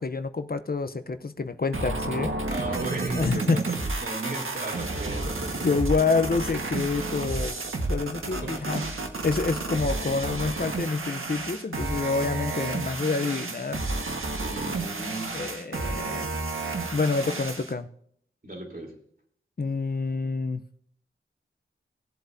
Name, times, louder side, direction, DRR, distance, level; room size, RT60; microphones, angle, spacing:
voice 1, 0.0-2.4 3.1-3.6 5.6-7.6 7.9-8.9 9.2-13.8 15.3-16.3 16.9-17.9 19.6-20.6, left 4 dB, 45° left, 0.7 m, -27 dB
sound 1, 1.7-17.7, right 3 dB, 85° right, 1.6 m, -31 dB
voice 2, 2.5-5.5 8.3-8.7 14.3-15.4 18.4-19.0, right 2 dB, 45° right, 3.6 m, -35 dB
19.0 x 7.8 x 2.7 m
wide cardioid pair, 55°, 21 cm